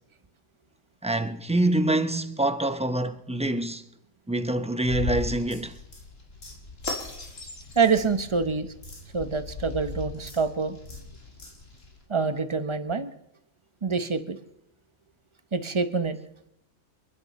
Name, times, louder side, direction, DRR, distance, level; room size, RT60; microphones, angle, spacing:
voice 1, 1.0-3.8 4.3-5.8, right 1 dB, 10° right, 0.4 m, -26 dB
sound 1, 4.8-12.0, left 3 dB, 85° left, 3.0 m, -38 dB
voice 2, 7.8-8.7 9.1-10.8 12.1-13.1 13.8-14.4 15.5-16.2, right 5 dB, 25° right, 0.8 m, -26 dB
28.0 x 11.0 x 4.3 m
omnidirectional pair, 1.3 m